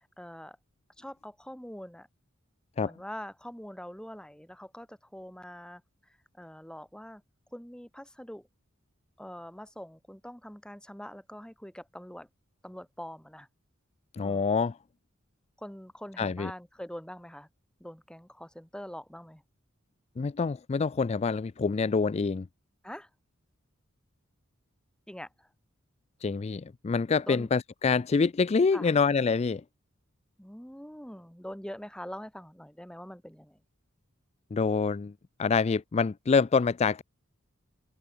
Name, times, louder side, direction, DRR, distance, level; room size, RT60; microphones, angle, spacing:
voice 1, 0.2-0.6 1.0-2.1 2.8-5.8 6.1-7.2 7.5-8.5 9.2-12.3 12.6-13.5 14.2-14.4 15.6-17.5 17.8-19.4 22.8-23.1 25.1-25.5 27.3-27.5 28.7-28.9 30.4-33.6, equal, 5° left, 2.9 m, -44 dB
voice 2, 14.1-14.7 16.2-16.5 20.2-22.5 26.2-29.6 34.5-35.1 35.4-37.0, left 5 dB, 30° left, 0.4 m, -26 dB
head